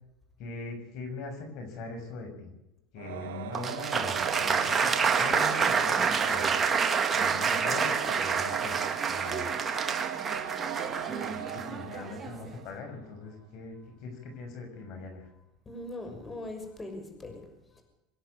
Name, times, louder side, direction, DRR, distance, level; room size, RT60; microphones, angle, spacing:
voice 1, 0.4-2.5 2.9-8.8 9.1-9.6 11.1-15.3, left 3 dB, 60° left, 5 dB, 6.5 m, -41 dB
Singing / Musical instrument, 3.0-13.0, right 10 dB, 80° right, 2.0 m, -39 dB
Applause, 3.6-12.5, right 6 dB, 25° right, 2.1 m, -28 dB
voice 2, 15.7-17.5 17.7-17.8, left 2 dB, 20° left, 4 dB, 6.3 m, -41 dB
26.0 x 10.5 x 9.8 m, 0.91 s
supercardioid pair, 100°, 0 cm